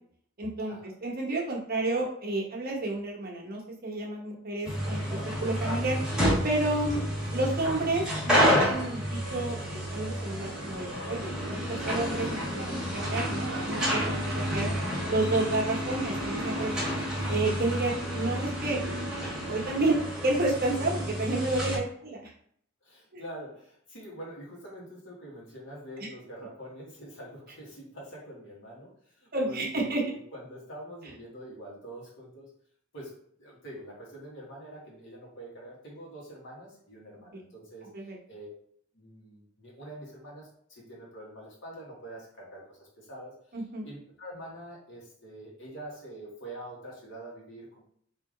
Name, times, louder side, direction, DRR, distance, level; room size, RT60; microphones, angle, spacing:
voice 1, 0.4-0.7 1.0-6.0 6.4-7.0 7.3-12.6 12.9-14.7 15.1-16.8 17.3-18.8 19.5-22.3 23.1-23.2 29.3-30.1 37.3-37.4 37.9-38.2 43.5-43.9, right 2 dB, 50° right, -1 dB, 1.0 m, -30 dB
sound 1, 4.6-21.8, equal, 5° right, 1.3 m, -30 dB
sound 2, 9.5-17.0, right 3 dB, 75° right, 0.6 m, -44 dB
voice 2, 16.4-16.8 19.3-19.4 22.8-32.5 32.9-38.5 38.9-47.8, right 1 dB, 70° left, -3 dB, 1.6 m, -45 dB
3.3 x 3.0 x 3.8 m, 0.63 s
head